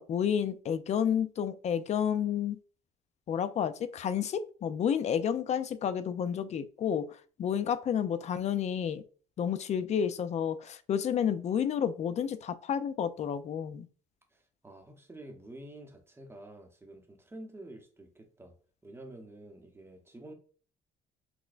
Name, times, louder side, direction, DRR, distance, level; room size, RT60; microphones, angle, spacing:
voice 1, 0.0-2.6 3.3-9.0 9.4-13.9, left 8 dB, 40° left, 13 dB, 0.4 m, -30 dB
voice 2, 14.3-18.5 18.8-20.3, right 1 dB, 15° right, 3 dB, 0.8 m, -49 dB
5.9 x 2.1 x 2.5 m, 0.40 s
cardioid pair, 110°, 17 cm